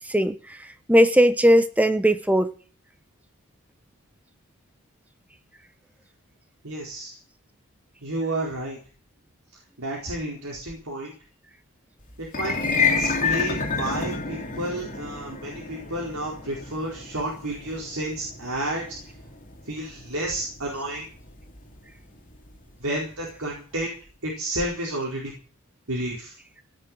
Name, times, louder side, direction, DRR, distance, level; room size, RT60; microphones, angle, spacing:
voice 1, 0.1-0.6 0.9-2.5, equal, 5° right, 10 dB, 1.0 m, -18 dB
voice 2, 6.6-7.2 8.0-8.8 9.8-11.1 12.2-18.8 19.7-21.0 22.8-23.9 24.2-25.3 25.9-26.3, right 1 dB, 75° right, -2 dB, 4.5 m, -31 dB
sound 1, 12.2-22.6, left 5 dB, 35° left, 2.7 m, -30 dB
17.0 x 6.7 x 9.7 m, 0.41 s
head